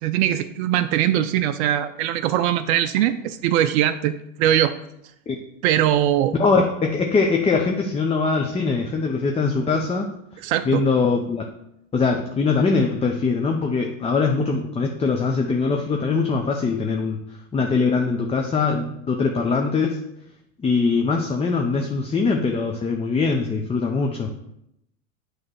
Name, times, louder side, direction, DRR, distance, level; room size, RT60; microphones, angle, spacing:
voice 1, 0.0-4.7 5.6-6.3 10.4-10.8, right 11 dB, 55° right, 9 dB, 0.5 m, -21 dB
voice 2, 6.4-10.1 10.6-11.4 11.9-17.2 17.5-20.0 20.6-24.3, left 4 dB, 15° left, 2 dB, 0.7 m, -22 dB
8.5 x 3.3 x 6.2 m, 0.79 s
hypercardioid pair, 90°, 40 cm